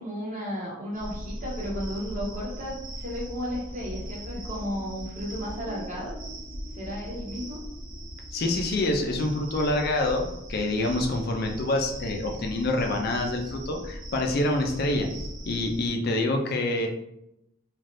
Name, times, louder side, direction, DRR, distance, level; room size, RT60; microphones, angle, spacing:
voice 1, 0.0-6.1 6.8-7.6, equal, 35° right, -5 dB, 1.1 m, -34 dB
sound 1, 0.9-15.9, equal, 75° right, 1.0 m, -39 dB
voice 2, 8.3-15.1 15.5-16.9, left 2 dB, 50° left, 2 dB, 0.4 m, -26 dB
3.3 x 2.4 x 2.6 m, 0.82 s
head